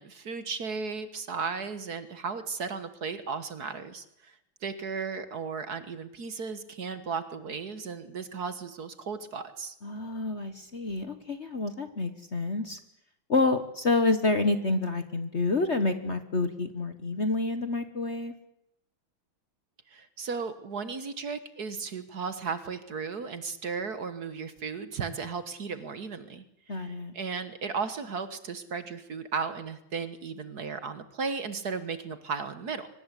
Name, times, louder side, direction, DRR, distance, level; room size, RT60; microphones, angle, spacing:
voice 1, 0.0-9.8 19.9-32.9, right 5 dB, 50° right, 11 dB, 1.8 m, -35 dB
voice 2, 9.8-12.8 13.3-18.3 26.7-27.1, left 3 dB, 35° left, 10 dB, 1.4 m, -28 dB
24.0 x 19.5 x 8.4 m, 0.80 s
omnidirectional pair, 2.3 m